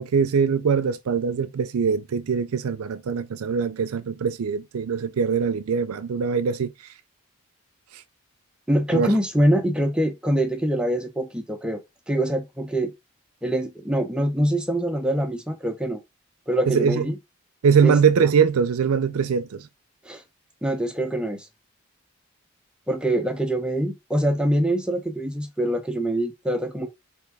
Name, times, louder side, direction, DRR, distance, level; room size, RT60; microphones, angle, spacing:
voice 1, 0.0-6.7 7.9-8.0 8.9-9.1 16.7-17.0 17.6-19.6, right 6 dB, 80° right, 0.4 m, -22 dB
voice 2, 8.7-12.9 13.4-16.0 16.5-17.2 17.8-18.0 20.0-20.2 20.6-21.5 22.9-26.9, right 1 dB, 5° right, 0.6 m, -24 dB
4.5 x 3.3 x 3.4 m
head